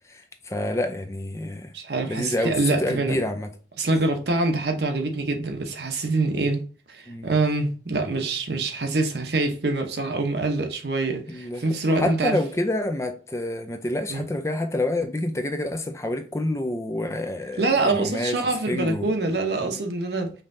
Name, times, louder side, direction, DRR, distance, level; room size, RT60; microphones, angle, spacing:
voice 1, 0.1-1.7 2.0-3.5 7.1-7.3 11.3-18.4 18.7-19.1 19.6-19.8, left 1 dB, 15° left, 0.4 m, -28 dB
voice 2, 1.7-3.2 3.8-6.6 6.9-12.4 14.1-14.3 17.6-20.3, right 3 dB, 65° right, 0.8 m, -25 dB
5.5 x 3.2 x 2.6 m
head